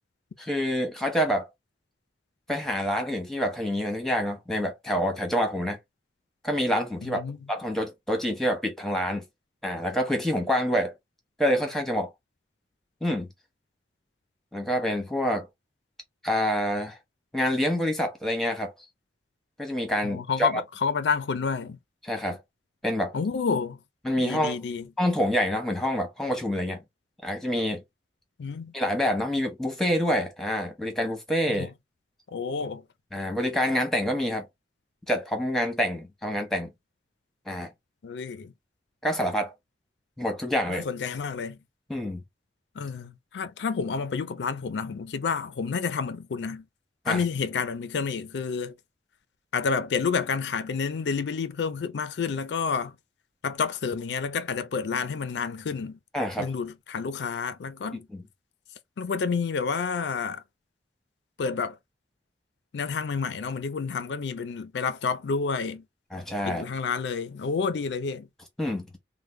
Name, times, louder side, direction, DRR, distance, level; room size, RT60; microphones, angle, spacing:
voice 1, 0.4-1.5 2.5-5.8 6.4-7.2 7.5-9.2 9.6-10.9 11.4-12.1 13.0-13.3 14.5-15.5 16.2-17.0 17.3-18.7 19.6-20.6 22.0-22.4 22.8-23.1 24.0-24.6 25.0-26.8 27.2-27.8 28.7-31.7 33.1-34.5 35.1-36.7 37.5-37.7 39.0-39.5 40.2-40.8 41.9-42.2 47.0-47.2 56.1-56.5 58.1-58.2 66.1-66.7 68.6-68.9, equal, ahead, 0.9 m, -27 dB
voice 2, 7.0-7.5 20.0-21.8 23.1-23.8 24.2-24.8 28.4-28.7 31.5-31.7 32.3-32.8 38.0-38.5 40.7-41.6 42.8-46.6 47.1-48.7 49.5-52.9 53.4-56.0 56.4-58.1 59.0-60.4 61.4-61.8 62.7-65.8 66.5-68.3, left 5 dB, 80° left, 0.4 m, -29 dB
3.3 x 2.1 x 3.1 m
head